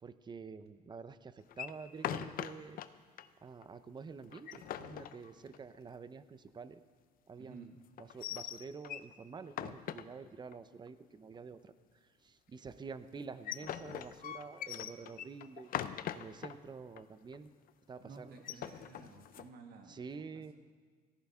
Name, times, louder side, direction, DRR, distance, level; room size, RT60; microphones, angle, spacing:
voice 1, 0.0-2.8 3.4-6.8 7.3-7.7 8.0-11.7 12.2-15.7 16.1-17.5 17.9-18.4 18.6-18.7 19.9-20.5, right 5 dB, 25° right, 12 dB, 0.7 m, -48 dB
sound 1, 1.5-2.9 3.2-3.3 3.6-3.7 4.2-5.8 8.0-9.1 9.5-10.5 13.1-16.5 17.0-17.1 17.3-17.7 18.3-19.5, left 10 dB, 60° left, 0.6 m, -41 dB
voice 2, 7.4-7.7 18.1-20.5, right 4 dB, 65° right, 3 dB, 2.0 m, -54 dB
18.0 x 14.5 x 3.7 m, 1.5 s
cardioid pair, 110°, 17 cm